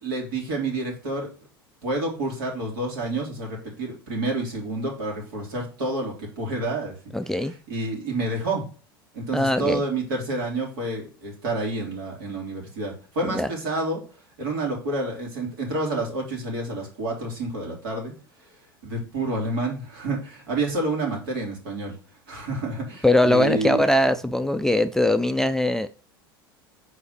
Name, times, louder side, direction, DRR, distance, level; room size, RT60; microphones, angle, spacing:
voice 1, 0.0-1.3 1.8-6.9 7.3-8.6 9.1-14.0 14.4-18.1 18.8-21.9 22.3-23.8, right 2 dB, 70° right, -1 dB, 3.0 m, -29 dB
voice 2, 7.1-7.5 9.3-9.8 13.3-13.5 23.0-25.9, left 1 dB, 5° left, 10 dB, 0.4 m, -21 dB
4.9 x 4.1 x 5.7 m, 0.38 s
hypercardioid pair, 85°, 12 cm